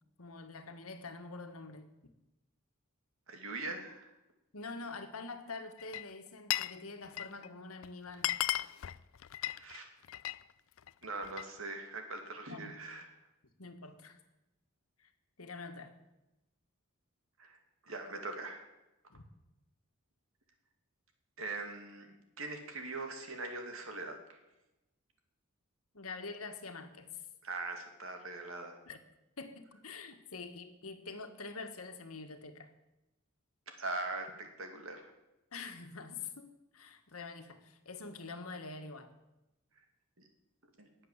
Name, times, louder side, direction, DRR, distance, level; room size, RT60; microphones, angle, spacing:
voice 1, 0.2-1.9 4.5-8.3 12.5-12.8 13.6-14.2 15.0-15.1 15.4-16.0 19.1-19.2 25.9-27.2 28.9-29.0 29.4-32.7 35.5-39.1, left 4 dB, 80° left, 7 dB, 1.7 m, -46 dB
voice 2, 3.3-4.1 9.4-9.9 11.0-13.1 17.4-17.6 17.8-18.7 21.4-22.1 22.4-24.4 27.4-28.8 33.8-35.1 40.2-40.3 40.8-40.9, right 3 dB, 70° right, 4 dB, 2.5 m, -41 dB
Glass, 5.8-6.8 7.0-7.5 7.8-7.9 8.1-10.4 10.8-11.5, left 13 dB, 65° left, 0.4 m, -36 dB
19.5 x 7.9 x 7.4 m, 0.96 s
head